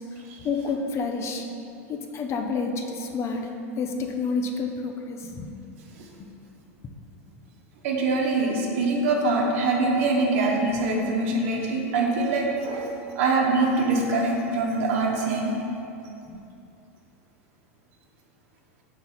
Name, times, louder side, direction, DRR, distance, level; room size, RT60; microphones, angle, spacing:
voice 1, 0.4-1.5 1.9-3.5 3.8-5.5 6.2-6.3, left 4 dB, 35° left, 3 dB, 0.6 m, -29 dB
voice 2, 7.8-12.9 13.2-15.5, right 3 dB, 70° right, -1 dB, 1.1 m, -24 dB
6.3 x 4.0 x 4.1 m, 2.8 s
hypercardioid pair, 105°, 8 cm